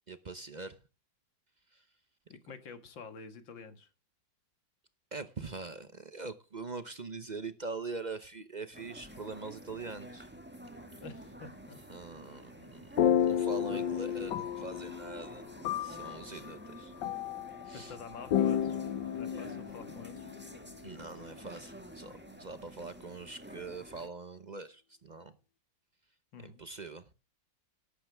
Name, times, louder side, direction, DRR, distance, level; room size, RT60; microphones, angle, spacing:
voice 1, 0.1-0.8 1.7-1.8 5.1-10.3 11.9-12.9 13.2-15.4 15.8-16.9 17.6-18.0 20.8-25.3 26.4-27.1, right 3 dB, 45° right, 0.6 m, -43 dB
voice 2, 2.3-3.9 11.0-11.8 13.7-13.8 17.7-18.8 19.2-20.3 26.3-26.6, left 5 dB, 90° left, 2.4 m, -48 dB
sound 1, 8.7-24.1, right 1 dB, 5° right, 1.3 m, -49 dB
Sad piano music, 13.0-21.5, left 9 dB, 75° left, 1.4 m, -33 dB
14.0 x 11.5 x 3.4 m
omnidirectional pair, 2.0 m